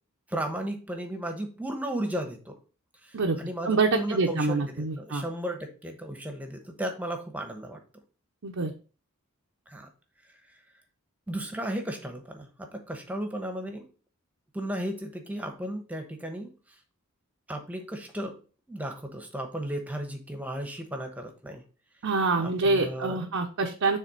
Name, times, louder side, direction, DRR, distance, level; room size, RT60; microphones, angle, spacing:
voice 1, 0.3-2.5 3.0-7.8 9.7-9.9 11.3-13.9 14.5-16.5 17.5-18.4 18.7-21.6 22.4-23.3, right 1 dB, 5° right, 4 dB, 1.0 m, -35 dB
voice 2, 3.6-5.2 8.4-8.7 22.0-24.0, right 3 dB, 65° right, 1 dB, 0.7 m, -26 dB
6.6 x 3.5 x 4.8 m, 0.36 s
head